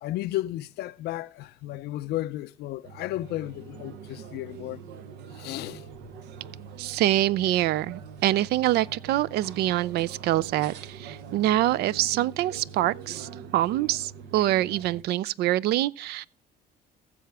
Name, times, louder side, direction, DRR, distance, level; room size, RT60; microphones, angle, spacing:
voice 1, 0.0-4.9 5.3-5.8, left 15 dB, 75° left, 0.5 m, -33 dB
sound 1, 2.8-15.0, right 6 dB, 90° right, 0.8 m, -44 dB
voice 2, 6.8-16.3, right 14 dB, 75° right, 0.4 m, -25 dB
15.0 x 6.8 x 3.3 m
cardioid pair, 110°, 17 cm